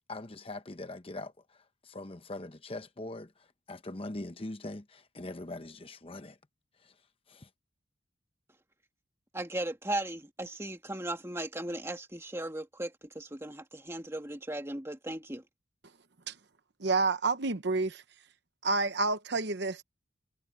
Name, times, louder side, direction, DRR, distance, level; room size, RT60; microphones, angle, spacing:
voice 1, 0.1-1.3 1.8-3.3 3.7-6.4 7.3-7.5, left 2 dB, 30° left, 0.9 m, -41 dB
voice 2, 9.3-15.4, right 1 dB, 15° right, 1.8 m, -37 dB
voice 3, 16.8-18.0 18.6-19.8, right 3 dB, 55° right, 0.9 m, -29 dB
head